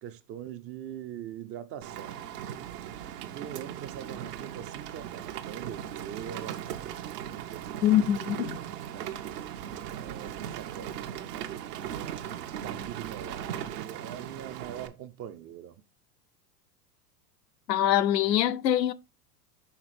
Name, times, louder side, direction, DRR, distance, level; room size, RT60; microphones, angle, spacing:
voice 1, 0.0-2.2 3.2-7.0 7.5-8.0 8.4-9.4 9.9-12.2 12.6-15.8, right 10 dB, 30° right, 0.4 m, -43 dB
Rain, 1.8-14.9, right 10 dB, 70° right, 1.0 m, -38 dB
voice 2, 7.8-8.6 17.7-18.9, left 11 dB, 85° left, 0.7 m, -24 dB
5.8 x 3.6 x 4.8 m
hypercardioid pair, 100°, 49 cm